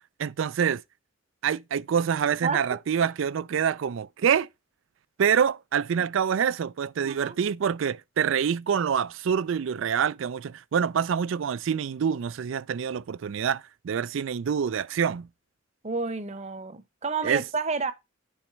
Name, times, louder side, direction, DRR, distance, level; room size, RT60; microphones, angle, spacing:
voice 1, 0.2-0.8 1.4-4.5 5.2-15.3 17.2-17.4, right 7 dB, 70° right, 0.4 m, -26 dB
voice 2, 7.0-7.4 15.8-17.9, right 4 dB, 35° right, 0.8 m, -30 dB
9.1 x 4.1 x 4.5 m
head